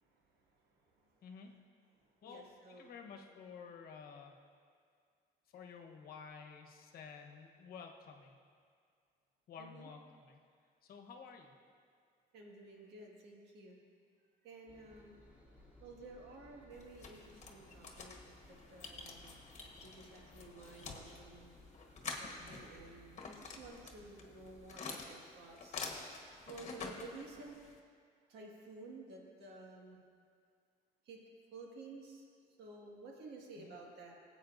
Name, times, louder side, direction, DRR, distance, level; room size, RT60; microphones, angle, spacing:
voice 1, 0.0-1.2 2.0-2.9 9.6-9.9 12.3-13.8 14.4-15.2 15.8-19.4 19.8-21.5 22.2-25.8 26.5-27.6 28.3-30.0 31.0-31.2 31.5-32.3 32.6-34.1, right 3 dB, 75° right, -1 dB, 1.9 m, -53 dB
voice 2, 1.2-1.5 2.2-4.3 5.5-8.4 9.5-10.4 10.8-11.5 22.4-22.6 33.6-33.7, left 6 dB, 60° left, 3 dB, 1.1 m, -52 dB
Engine, 14.7-24.8, left 1 dB, 10° right, 2.5 m, -61 dB
sound 1, 16.7-27.8, left 4 dB, 45° left, 1.3 m, -48 dB
18.5 x 8.2 x 2.6 m, 2.1 s
cardioid pair, 110°, 17 cm